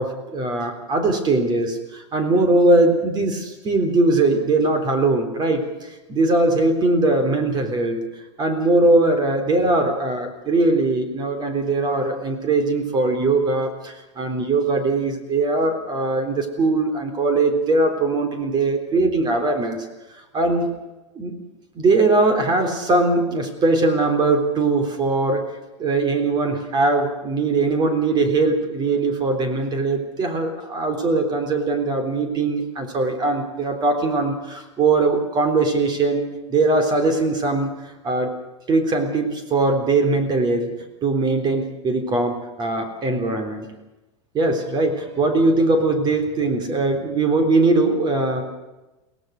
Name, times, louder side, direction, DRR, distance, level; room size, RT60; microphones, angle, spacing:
voice 1, 0.0-8.0 8.4-19.9 20.3-20.7 21.2-21.3 21.7-25.5 25.8-38.3 38.7-40.7 41.0-43.7 44.3-48.4, right 2 dB, 30° right, 6 dB, 3.8 m, -21 dB
23.0 x 17.5 x 6.6 m, 1.0 s
supercardioid pair, 125°, 16 cm